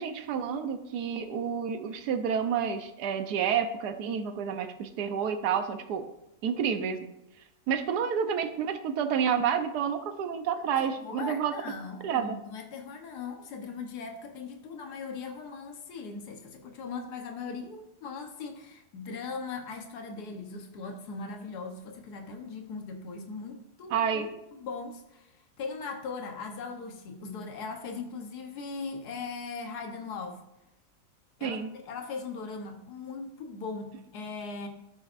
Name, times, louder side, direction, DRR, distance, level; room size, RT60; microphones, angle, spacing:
voice 1, 0.0-6.1 6.4-7.1 7.7-11.5 12.0-12.3 23.9-24.3 31.4-31.7, right 7 dB, 80° right, 8 dB, 1.3 m, -29 dB
voice 2, 10.7-24.3 24.6-30.4 31.4-34.7, left 4 dB, 80° left, 4 dB, 1.6 m, -39 dB
11.5 x 8.6 x 2.5 m, 0.86 s
omnidirectional pair, 1.7 m